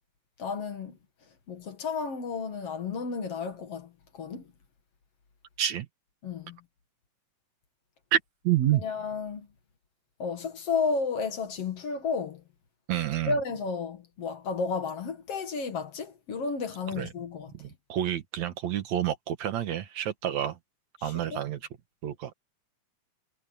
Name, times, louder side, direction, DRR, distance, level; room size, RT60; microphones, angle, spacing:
voice 1, 0.4-1.0 1.5-4.5 6.2-6.6 8.8-9.5 10.2-12.4 13.3-17.5 21.0-21.4, left 4 dB, 55° left, 2.7 m, -32 dB
voice 2, 8.1-8.8 12.9-13.4 16.9-17.1 17.6-20.6 21.0-21.6 22.0-22.3, right 11 dB, 70° right, 2.6 m, -29 dB
omnidirectional pair, 3.4 m